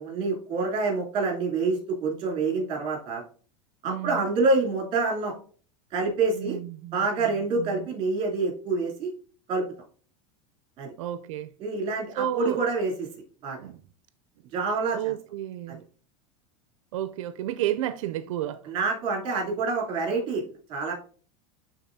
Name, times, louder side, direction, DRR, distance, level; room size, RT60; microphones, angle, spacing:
voice 1, 0.0-3.2 3.8-5.3 5.9-6.6 6.9-9.1 9.5-9.6 10.8-10.9 11.6-13.1 13.4-13.7 14.5-15.0 15.7-15.8 18.6-20.4 20.7-20.9, right 3 dB, 30° right, 2.9 m, -27 dB
voice 2, 3.9-4.3 6.4-7.9 11.0-11.5 12.2-12.7 13.6-13.8 14.9-15.8 16.9-18.7, right 12 dB, 90° right, 0.4 m, -32 dB
11.0 x 3.8 x 2.7 m
supercardioid pair, 160°, 16 cm